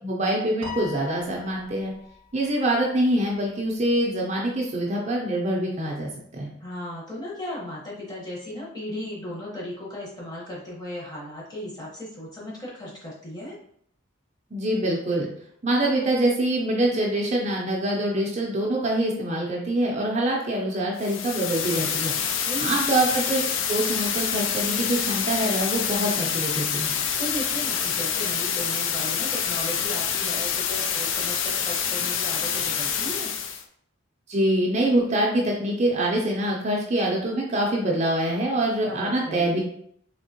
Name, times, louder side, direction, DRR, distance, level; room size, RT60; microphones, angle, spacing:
voice 1, 0.0-1.9 2.3-6.5 14.5-15.3 15.6-22.1 22.6-23.4 23.7-26.9 34.3-39.6, right 1 dB, 35° right, -2 dB, 0.5 m, -25 dB
Piano, 0.6-3.1, left 5 dB, 70° right, 0.8 m, -41 dB
voice 2, 6.6-13.6 22.2-22.7 27.2-33.3 38.9-39.6, left 1 dB, 20° left, -5 dB, 1.0 m, -36 dB
sound 1, 21.0-33.6, left 7 dB, 70° left, 0.4 m, -27 dB
3.5 x 2.8 x 2.8 m, 0.67 s
head